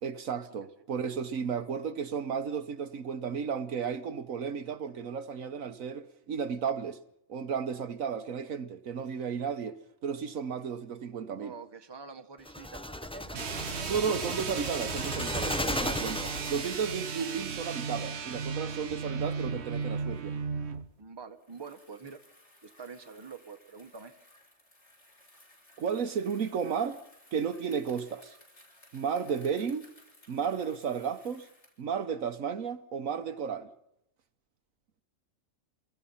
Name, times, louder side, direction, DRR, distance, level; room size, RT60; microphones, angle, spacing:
voice 1, 0.0-7.0 7.3-11.5 13.9-16.2 16.5-20.4 25.8-27.0 27.3-28.4 28.9-29.9 30.3-31.4 31.8-33.7, right 6 dB, 70° right, 1.4 m, -33 dB
voice 2, 11.4-14.2 15.9-16.1 21.0-22.2 22.6-24.1, right 5 dB, 20° right, 1.2 m, -47 dB
sound 1, 12.5-17.0, left 1 dB, 5° left, 0.4 m, -35 dB
sound 2, 13.3-20.9, right 5 dB, 55° right, 1.2 m, -35 dB
Bicycle, 21.3-31.9, left 1 dB, 50° left, 8.1 m, -59 dB
29.0 x 21.0 x 5.7 m
omnidirectional pair, 1.5 m